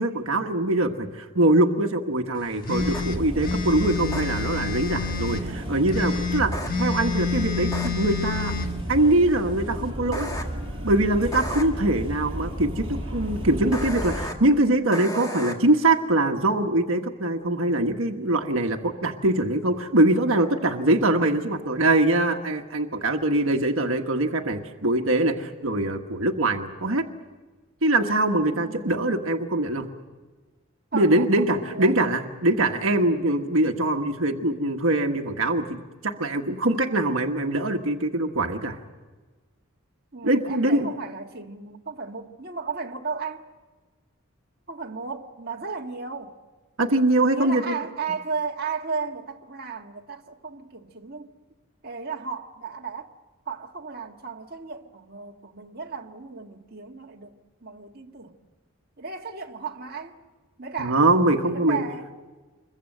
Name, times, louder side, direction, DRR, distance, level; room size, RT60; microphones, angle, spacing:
voice 1, 0.0-8.6 8.9-10.3 10.8-27.1 27.8-29.9 30.9-38.8 40.2-40.9 46.8-47.8 60.8-61.8, right 1 dB, 70° right, 1.5 m, -23 dB
sound 1, 2.6-5.5 5.9-8.7, left 5 dB, 40° left, 1.4 m, -29 dB
sound 2, 2.7-14.3, equal, 25° right, 5.9 m, -33 dB
sound 3, 2.9-3.0 4.1-4.2 6.5-6.7 7.7-7.9 10.1-10.4 11.3-11.6 13.7-14.3 14.9-15.5, left 1 dB, 15° left, 2.1 m, -33 dB
voice 2, 5.3-5.7 6.6-7.3 28.5-29.0 30.9-32.0 40.1-43.4 44.7-46.3 47.3-51.3 51.8-53.1 53.4-57.3 57.6-58.3 59.0-60.1 60.6-61.1 61.4-62.1, right 5 dB, 45° right, 1.6 m, -35 dB
26.5 x 22.5 x 7.8 m
head